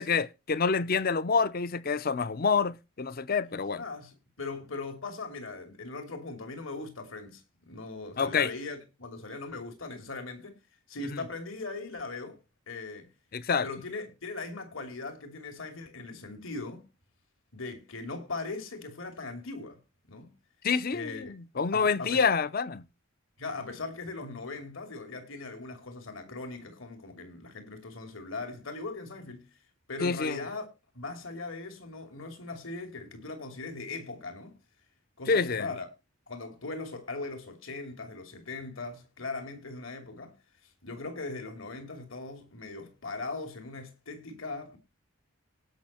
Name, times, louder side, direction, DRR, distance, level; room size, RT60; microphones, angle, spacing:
voice 1, 0.0-3.8 8.2-8.5 13.3-13.7 20.6-22.8 30.0-30.4 35.3-35.7, left 5 dB, 45° left, 0.6 m, -27 dB
voice 2, 3.5-10.6 10.9-12.4 12.7-13.1 13.6-16.9 17.5-20.3 20.9-21.3 21.7-22.3 23.4-29.5 29.9-30.7 30.9-34.6 35.2-35.9 36.3-40.4 40.6-44.8, left 3 dB, 65° left, 2.9 m, -39 dB
18.0 x 6.2 x 4.3 m
head